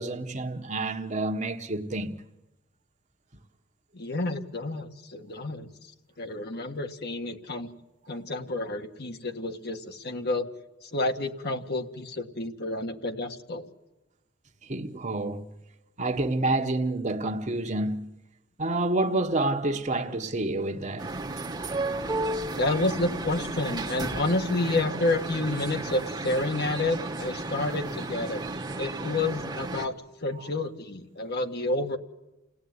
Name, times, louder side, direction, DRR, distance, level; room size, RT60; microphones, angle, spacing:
voice 1, 0.0-2.2 14.6-15.5 16.0-18.1 18.6-21.1 21.6-21.8 30.3-30.5, right 2 dB, 35° right, 1.5 m, -29 dB
voice 2, 3.9-5.7 6.2-7.7 8.1-10.5 10.8-13.6 22.5-28.4 28.8-29.9 30.2-32.0, left 2 dB, 55° left, 1.9 m, -29 dB
sound 1, 21.0-29.9, right 2 dB, 20° right, 1.4 m, -33 dB
29.5 x 18.0 x 9.7 m
head